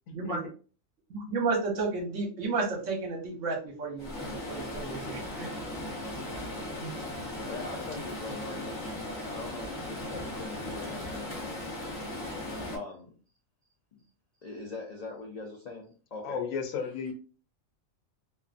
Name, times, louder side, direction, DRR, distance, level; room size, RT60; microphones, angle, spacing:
voice 1, 0.1-0.4 6.8-6.9 16.2-17.1, left 5 dB, 85° left, 4 dB, 1.0 m, -34 dB
voice 2, 1.1-5.5, right 3 dB, 75° right, 1 dB, 1.1 m, -32 dB
Stream, 4.0-12.8, left 1 dB, 25° left, 0.8 m, -37 dB
voice 3, 7.4-11.6 12.7-13.1 13.9-14.0 14.4-16.4, left 3 dB, 65° left, 0 dB, 0.4 m, -42 dB
2.5 x 2.4 x 2.4 m, 0.38 s
omnidirectional pair, 1.4 m